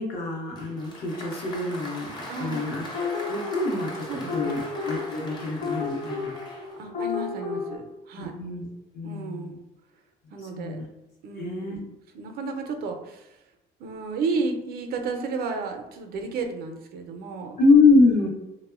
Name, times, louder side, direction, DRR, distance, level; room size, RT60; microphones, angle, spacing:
voice 1, 0.0-6.3 8.2-8.7 8.9-9.5 10.5-10.8 11.4-11.8 17.6-18.3, left 3 dB, 65° left, 0 dB, 0.7 m, -24 dB
Applause, 0.6-6.9, left 1 dB, 25° left, 0.6 m, -40 dB
voice 2, 2.3-2.7 4.1-4.6 6.8-8.3 9.0-9.6 10.3-10.8 11.2-13.3 13.8-17.6, right 4 dB, 65° right, 5 dB, 0.4 m, -33 dB
sound 1, 2.9-7.8, left 5 dB, 45° left, 1.0 m, -33 dB
2.9 x 2.0 x 2.3 m, 0.91 s
cardioid pair, 110°, 17 cm